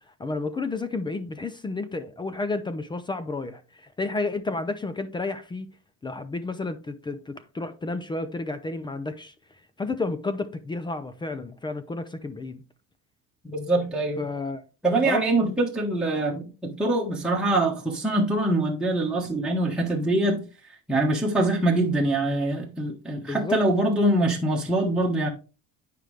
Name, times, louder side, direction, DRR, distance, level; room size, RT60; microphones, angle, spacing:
voice 1, 0.2-5.7 6.0-9.3 9.8-12.6 14.2-14.6 15.0-15.4 23.2-23.6, left 3 dB, 15° left, 0.5 m, -31 dB
voice 2, 13.4-14.2 14.8-20.4 20.9-25.3, right 2 dB, 5° right, 1.3 m, -24 dB
9.2 x 5.1 x 3.2 m
cardioid pair, 145°, 33 cm